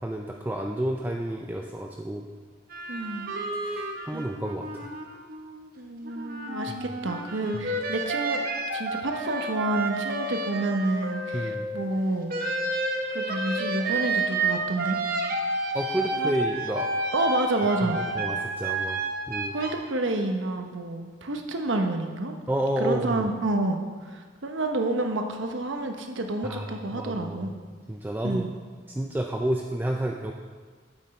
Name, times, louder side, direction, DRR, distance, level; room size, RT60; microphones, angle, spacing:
voice 1, 0.0-2.2 3.6-4.9 6.7-6.8 7.5-7.7 11.3-11.7 15.7-16.9 17.8-19.0 19.3-19.5 22.5-23.3 26.4-27.5 27.9-28.5 28.9-30.3, right 1 dB, 10° right, 1 dB, 0.4 m, -30 dB
sound 1, 2.7-5.7 6.0-11.9 12.3-19.7, right 2 dB, 50° right, 0.8 m, -30 dB
voice 2, 2.9-3.3 4.1-4.3 5.8-8.5 8.7-12.3 13.1-15.0 16.1-16.4 17.1-18.0 19.5-22.4 22.8-27.5 28.2-28.5, right 2 dB, 75° right, 4 dB, 0.9 m, -29 dB
9.0 x 7.8 x 4.2 m, 1.5 s
head